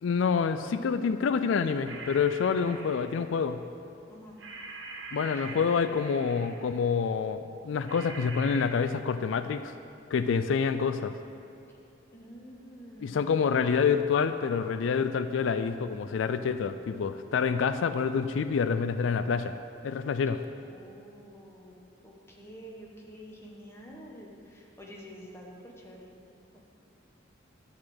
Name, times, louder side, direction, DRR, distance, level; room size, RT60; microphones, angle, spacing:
voice 1, 0.0-3.6 5.1-9.7 10.1-11.1 13.0-19.5 19.8-20.4, left 6 dB, 85° left, 11 dB, 0.4 m, -27 dB
sound 1, 1.9-3.4 4.4-6.8 7.8-8.6, right 3 dB, 70° right, 1.3 m, -44 dB
voice 2, 4.1-4.4 5.3-5.6 12.1-13.3 20.5-26.1, equal, 15° left, -2 dB, 1.3 m, -48 dB
11.5 x 4.3 x 7.6 m, 2.7 s
head